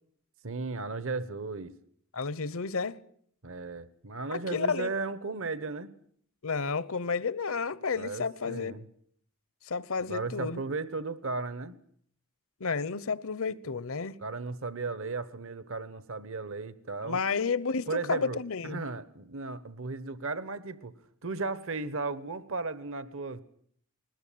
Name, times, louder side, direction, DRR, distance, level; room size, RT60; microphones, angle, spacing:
voice 1, 0.4-1.7 3.4-5.9 7.9-8.9 10.1-11.7 14.2-17.2 17.9-21.0 21.2-23.4, right 3 dB, 65° right, 1.2 m, -35 dB
voice 2, 2.1-3.0 4.3-4.9 6.4-8.7 9.6-10.6 12.6-14.2 17.0-18.8, left 5 dB, 65° left, 1.0 m, -31 dB
21.0 x 20.5 x 8.7 m
head